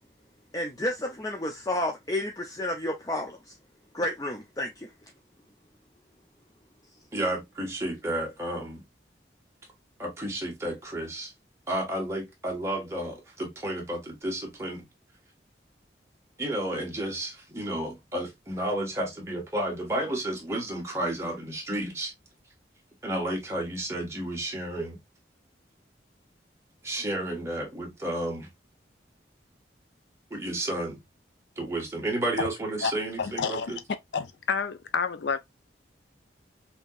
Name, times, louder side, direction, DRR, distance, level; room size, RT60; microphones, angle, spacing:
voice 1, 0.5-3.4 3.9-4.9, left 1 dB, 20° left, 0.5 m, -31 dB
voice 2, 7.1-8.8 10.0-11.3 11.7-14.8 16.4-22.1 23.0-25.0 26.8-28.5 30.3-31.0 31.6-33.8, right 1 dB, 15° right, 1.3 m, -32 dB
voice 3, 33.2-33.8 34.1-35.4, left 5 dB, 75° left, 0.5 m, -29 dB
5.4 x 2.9 x 2.4 m
head